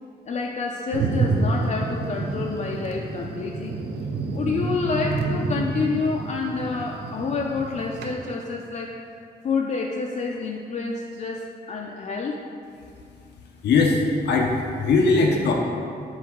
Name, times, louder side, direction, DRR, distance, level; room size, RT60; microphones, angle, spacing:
voice 1, 0.3-3.8 4.3-9.0 9.4-12.5, left 4 dB, 45° left, 0 dB, 0.4 m, -28 dB
Thunder, 0.9-8.1, right 3 dB, 70° right, 0.6 m, -28 dB
voice 2, 13.6-15.5, left 3 dB, 90° left, 0 dB, 0.6 m, -20 dB
7.6 x 3.5 x 3.6 m, 2.4 s
wide cardioid pair, 140°, 17 cm